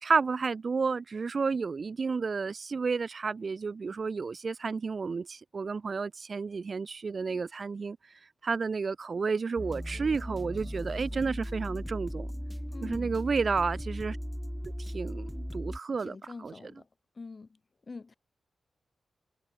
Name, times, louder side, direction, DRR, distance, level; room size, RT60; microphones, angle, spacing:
voice 1, 0.0-8.0 8.4-12.3 12.8-14.2 14.8-16.7, right 4 dB, 45° right, 2.1 m, -31 dB
sound 1, 9.6-15.8, equal, ahead, 4.7 m, -37 dB
voice 2, 12.7-13.2 16.0-16.9 17.2-17.5 17.9-18.2, left 4 dB, 35° left, 6.4 m, -44 dB
wide cardioid pair, 100°, 0 cm